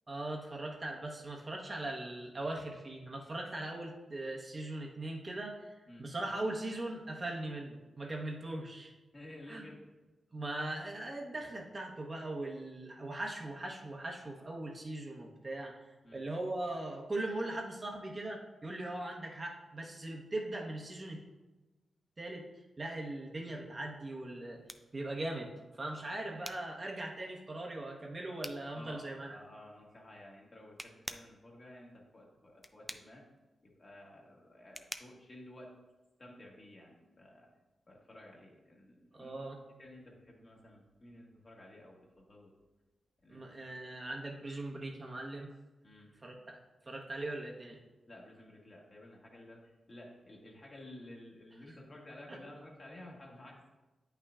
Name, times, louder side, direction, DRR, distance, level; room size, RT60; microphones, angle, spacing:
voice 1, 0.1-8.9 9.5-9.7 10.3-15.8 16.1-21.2 22.2-22.4 22.8-24.6 24.9-25.5 25.7-29.4 39.1-39.6 43.3-45.5 46.2-46.6 46.9-47.8 52.3-52.4, right 2 dB, 35° right, 0 dB, 1.1 m, -40 dB
voice 2, 9.1-9.8 16.0-16.2 28.7-33.2 33.6-35.7 36.2-37.5 37.9-42.5 43.2-43.7 45.8-46.1 48.1-53.7, left 1 dB, 40° left, -2 dB, 1.6 m, -53 dB
sound 1, 23.9-36.4, left 1 dB, 10° left, 0.4 m, -51 dB
8.6 x 5.7 x 2.4 m, 1.1 s
cardioid pair, 65°, 0 cm